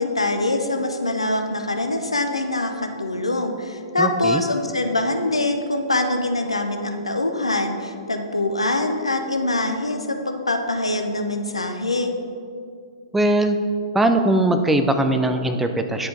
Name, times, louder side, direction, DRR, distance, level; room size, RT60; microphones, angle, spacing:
voice 1, 0.0-12.1, left 2 dB, 80° left, 5 dB, 0.6 m, -24 dB
voice 2, 4.0-4.4 13.1-13.6 13.9-16.1, right 1 dB, 5° right, 7 dB, 0.3 m, -20 dB
9.5 x 4.4 x 3.9 m, 2.4 s
figure-of-eight pair, 110°, 3 cm